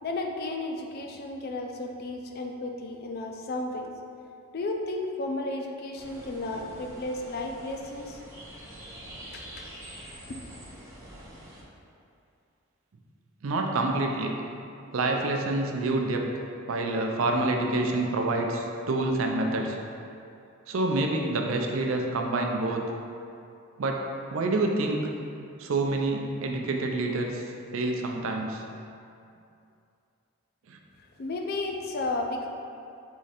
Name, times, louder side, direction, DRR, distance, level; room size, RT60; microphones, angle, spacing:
voice 1, 0.0-3.9 4.5-8.2 9.3-9.4 10.3-10.4 31.2-32.5, left 2 dB, 45° left, 2 dB, 0.4 m, -33 dB
sound 1, 5.9-11.6, right 1 dB, 15° right, 0.6 m, -45 dB
voice 2, 13.4-14.3 14.9-16.3 16.7-19.8 20.7-22.8 23.8-24.0 24.3-25.1 25.6-27.4 27.7-28.6 30.7-30.8, right 2 dB, 70° right, 2 dB, 0.5 m, -27 dB
3.7 x 3.1 x 4.2 m, 2.6 s
head